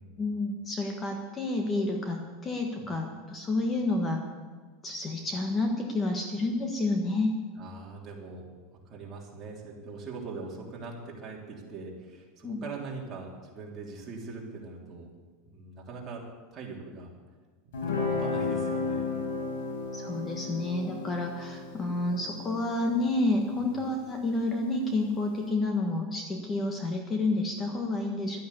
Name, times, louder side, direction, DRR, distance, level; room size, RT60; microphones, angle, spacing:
voice 1, 0.2-4.2 4.8-7.3 12.4-12.6 19.9-28.4, left 2 dB, 20° left, 3 dB, 1.4 m, -29 dB
voice 2, 7.6-8.5 8.8-15.1 15.4-16.2 16.5-17.2 17.6-17.7 18.0-19.5 20.4-20.5 23.6-23.8, right 4 dB, 25° right, -2 dB, 3.4 m, -42 dB
Guitar, 17.7-24.9, left 4 dB, 85° left, 5.2 m, -34 dB
12.5 x 9.3 x 8.5 m, 1.4 s
supercardioid pair, 150°, 0 cm